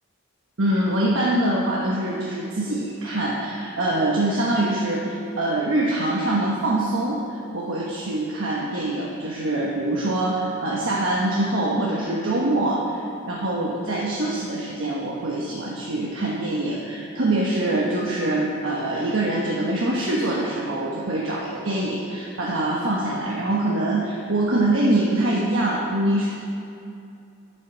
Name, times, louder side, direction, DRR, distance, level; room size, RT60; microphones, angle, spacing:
voice 1, 0.6-13.0 13.3-26.3, right 1 dB, 70° right, -4 dB, 1.2 m, -24 dB
10.0 x 8.3 x 6.1 m, 2.6 s
head